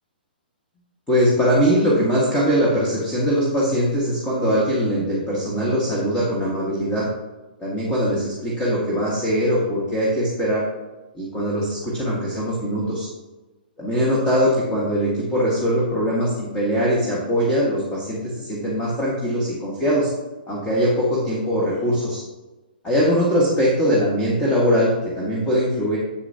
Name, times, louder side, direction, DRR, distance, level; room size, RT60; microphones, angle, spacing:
voice 1, 1.1-7.1 7.6-10.6 11.1-13.1 13.8-20.1 20.5-22.2 22.8-26.0, equal, 15° left, -6 dB, 1.7 m, -21 dB
8.0 x 7.7 x 2.9 m, 1.1 s
hypercardioid pair, 130°, 5 cm